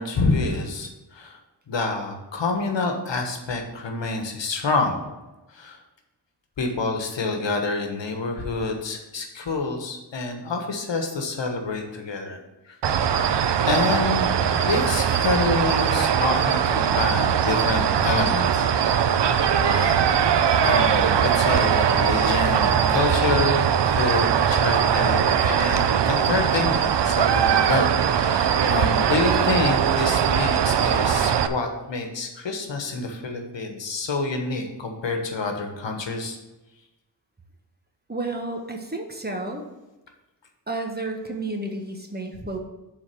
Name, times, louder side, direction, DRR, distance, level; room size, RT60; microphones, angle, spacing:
voice 1, 0.0-1.4 1.7-5.1 5.5-5.8 6.6-12.4 12.7-12.8 13.7-14.3 14.5-18.7 19.0-20.0 20.6-36.4, left 3 dB, 80° left, 4 dB, 1.4 m, -27 dB
sound 1, 12.8-31.5, right 8 dB, 70° right, 0.6 m, -21 dB
voice 2, 38.1-39.6 40.7-42.6, right 2 dB, 20° right, 2 dB, 1.3 m, -31 dB
7.3 x 4.2 x 6.8 m, 1.1 s
wide cardioid pair, 80°, 43 cm